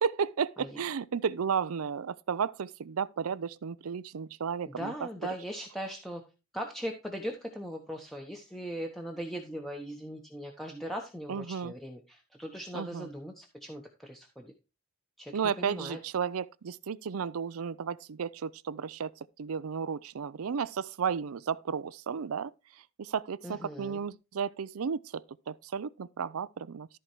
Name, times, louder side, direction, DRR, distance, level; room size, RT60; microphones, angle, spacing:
voice 1, 0.0-4.9 11.3-11.7 12.7-13.1 15.3-19.1 19.4-22.5 23.0-26.9, right 6 dB, 90° right, 0.5 m, -33 dB
voice 2, 4.8-6.2 6.5-14.5 15.2-16.0 23.4-24.0, equal, ahead, 1.0 m, -39 dB
13.5 x 4.6 x 4.6 m
head